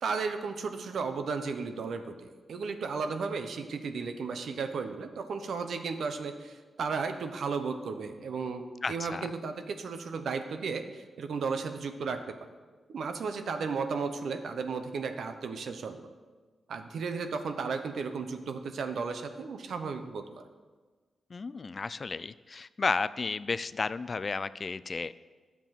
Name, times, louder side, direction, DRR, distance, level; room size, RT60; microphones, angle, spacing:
voice 1, 0.0-12.2 12.9-16.1 16.7-20.4, right 5 dB, 75° right, 8 dB, 0.9 m, -34 dB
voice 2, 8.8-9.3 21.3-25.1, left 4 dB, 45° left, 15 dB, 0.3 m, -33 dB
11.0 x 7.2 x 5.8 m, 1.4 s
cardioid pair, 75°, 0 cm